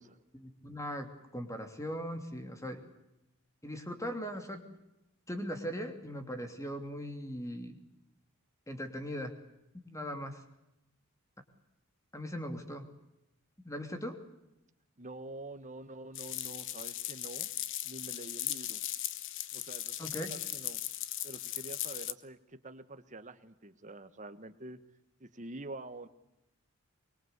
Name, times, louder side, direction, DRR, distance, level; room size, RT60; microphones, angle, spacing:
voice 1, 0.3-2.8 3.6-4.6 5.3-7.8 8.7-9.3 9.8-10.4 12.1-12.8 13.6-14.2 20.0-20.3, equal, 15° left, 6 dB, 2.9 m, -39 dB
voice 2, 15.0-17.5 17.8-18.8 19.5-20.8 21.2-24.8 25.2-26.1, right 2 dB, 35° right, 10 dB, 1.5 m, -47 dB
sound 1, 16.2-22.1, left 13 dB, 60° left, 1.1 m, -38 dB
24.0 x 22.5 x 8.3 m, 0.91 s
head